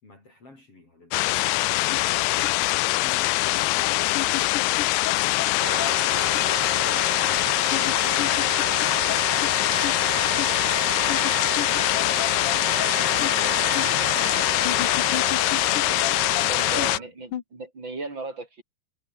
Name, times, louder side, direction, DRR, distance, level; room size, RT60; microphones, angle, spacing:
voice 1, 0.0-1.4 16.5-17.1, left 2 dB, 35° left, 7.0 m, -50 dB
sound 1, 1.1-17.0, left 20 dB, 80° left, 2.6 m, -23 dB
sound 2, 1.9-2.0 2.4-2.5 4.1-5.1 5.4-5.5 5.8-5.9 6.3-6.5 7.7-9.2 9.4-9.5 9.8-9.9 10.4-10.5 11.1-12.5 12.8-12.9 13.2-13.3 13.8-13.9 14.6-16.1 16.4-16.5 16.8-16.9 17.3-17.4, left 12 dB, 60° left, 2.4 m, -31 dB
Wind instrument woodwind instrument, 5.6-17.0, right 20 dB, 90° right, 2.8 m, -34 dB
voice 2, 13.2-14.8 16.5-18.6, right 3 dB, 25° right, 5.5 m, -38 dB
omnidirectional pair, 4.9 m